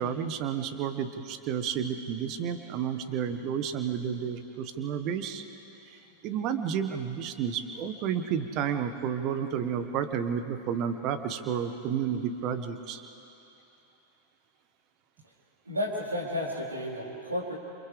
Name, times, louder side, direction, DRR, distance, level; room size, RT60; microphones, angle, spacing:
voice 1, 0.0-5.4 5.9-13.0, right 8 dB, 40° right, 9 dB, 1.3 m, -31 dB
voice 2, 15.6-17.6, left 1 dB, 80° right, -5 dB, 4.4 m, -32 dB
29.5 x 28.0 x 3.5 m, 2.8 s
figure-of-eight pair, 90°, 0 cm